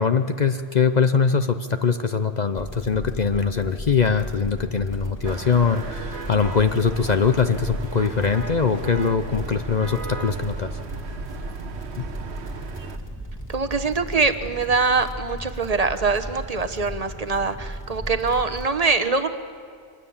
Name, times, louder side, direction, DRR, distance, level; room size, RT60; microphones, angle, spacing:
voice 1, 0.0-10.7 12.0-12.1, left 5 dB, 45° left, 8 dB, 0.8 m, -22 dB
sound 1, 2.6-18.6, right 1 dB, 15° left, 2.7 m, -36 dB
sound 2, 5.2-13.0, right 5 dB, 75° right, 1.3 m, -36 dB
voice 2, 13.5-19.3, right 4 dB, 35° right, 8 dB, 1.1 m, -23 dB
25.0 x 20.0 x 7.3 m, 2.2 s
omnidirectional pair, 1.1 m